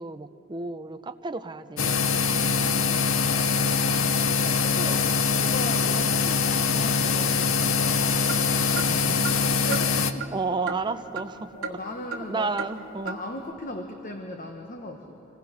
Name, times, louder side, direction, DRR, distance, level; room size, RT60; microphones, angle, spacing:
voice 1, 0.0-2.0 8.9-9.3 10.3-11.8 12.2-13.2, right 3 dB, 20° right, 9 dB, 0.6 m, -32 dB
sound 1, 1.8-10.1, left 5 dB, 65° left, 0.8 m, -23 dB
voice 2, 4.5-5.1 5.3-8.6 9.6-10.4 11.5-12.7 13.0-15.2, left 1 dB, 40° left, 3 dB, 1.1 m, -38 dB
sound 2, 8.2-11.4 11.6-12.3 12.6-12.7 13.1-13.2, right 6 dB, 75° right, 1.9 m, -36 dB
26.5 x 18.5 x 5.8 m, 3.0 s
head